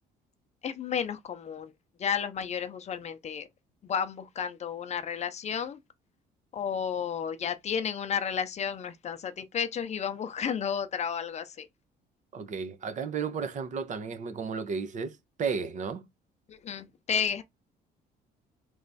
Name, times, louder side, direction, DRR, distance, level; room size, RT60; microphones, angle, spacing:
voice 1, 0.6-1.7 2.0-3.5 3.8-5.8 6.5-11.7 16.5-17.4, left 7 dB, 40° left, 0.6 m, -32 dB
voice 2, 12.3-16.1, right 5 dB, 45° right, 0.9 m, -33 dB
3.5 x 3.1 x 4.1 m
cardioid pair, 110°, 17 cm